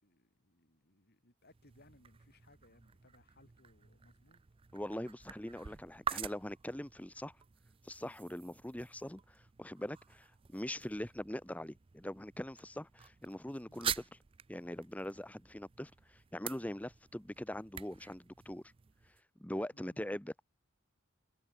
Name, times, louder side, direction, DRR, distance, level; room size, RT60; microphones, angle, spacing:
voice 1, 0.0-4.4 9.8-9.9 13.7-13.8 19.7-20.0, left 1 dB, 50° left, 5.9 m, -66 dB
sound 1, 1.4-19.2, right 8 dB, 25° right, 0.4 m, -47 dB
voice 2, 4.7-7.3 7.8-10.3 10.5-14.0 14.5-18.6 19.4-20.4, left 1 dB, 5° left, 0.8 m, -42 dB
head